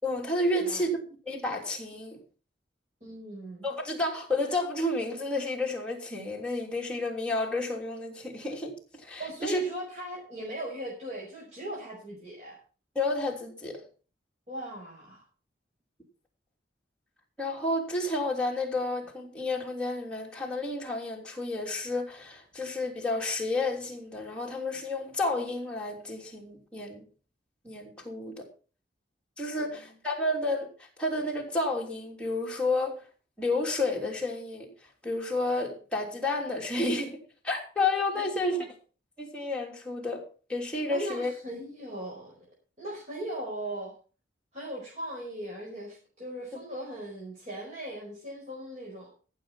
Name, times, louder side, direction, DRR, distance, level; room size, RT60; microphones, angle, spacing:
voice 1, 0.0-1.0 1.3-2.2 3.6-9.6 12.9-13.8 17.4-27.0 27.6-28.5 29.4-33.0 33.4-34.7 35.0-38.6 39.2-41.3, left 2 dB, 5° left, 3.1 m, -31 dB
voice 2, 0.5-0.9 3.0-3.7 9.2-12.6 14.5-15.2 29.5-29.9 38.2-38.7 40.9-42.4 42.8-43.9 44.5-49.1, right 1 dB, 40° right, 5.1 m, -39 dB
14.5 x 7.5 x 5.5 m
head